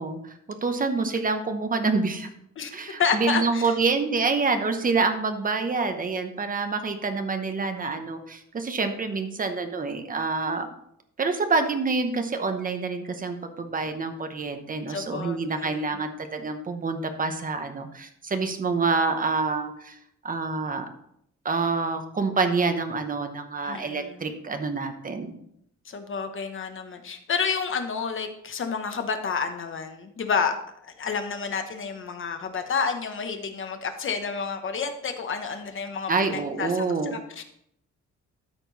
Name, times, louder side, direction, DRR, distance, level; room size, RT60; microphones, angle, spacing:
voice 1, 0.0-2.3 2.7-10.7 11.2-20.0 20.2-20.8 21.4-25.3 36.1-37.2, right 4 dB, 30° right, 7 dB, 0.9 m, -27 dB
voice 2, 3.0-3.7 14.9-15.8 23.6-24.3 25.9-30.5 30.8-37.4, left 5 dB, 40° left, 6 dB, 1.0 m, -30 dB
13.0 x 4.5 x 4.0 m, 0.74 s
wide cardioid pair, 160°, 30 cm